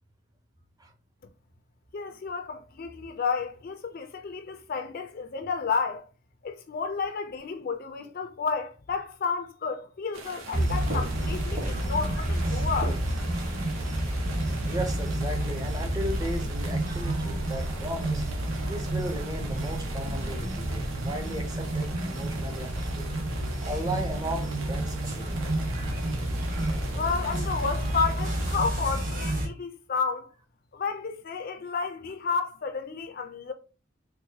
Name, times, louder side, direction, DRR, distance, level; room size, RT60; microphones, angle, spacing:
voice 1, 1.9-6.1 6.4-13.0 26.9-30.3 30.7-33.5, left 5 dB, 45° left, 0.4 m, -31 dB
sound 1, 10.1-28.6, right 4 dB, 85° right, 0.8 m, -43 dB
sound 2, 10.5-29.5, right 1 dB, 40° right, 1.1 m, -30 dB
voice 2, 14.6-18.2 18.6-23.1 23.6-25.5, equal, 20° right, 0.5 m, -36 dB
4.5 x 2.1 x 2.7 m
head